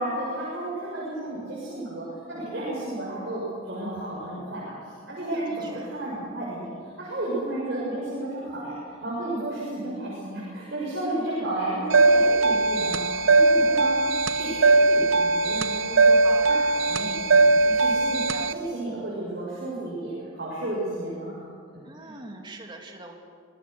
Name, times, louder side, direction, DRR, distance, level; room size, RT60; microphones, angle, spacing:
voice 1, 0.0-6.7 7.0-13.9 14.3-16.2 16.4-18.2 18.5-21.4 22.0-22.1, right 1 dB, 55° right, -7 dB, 6.9 m, -32 dB
voice 2, 5.3-5.9 11.3-11.5 16.2-16.5 18.3-18.7 21.8-23.2, right 2 dB, 25° right, 2 dB, 2.6 m, -42 dB
sound 1, 11.9-18.5, right 3 dB, 75° right, 0.8 m, -20 dB
25.5 x 19.5 x 6.9 m, 2.1 s
head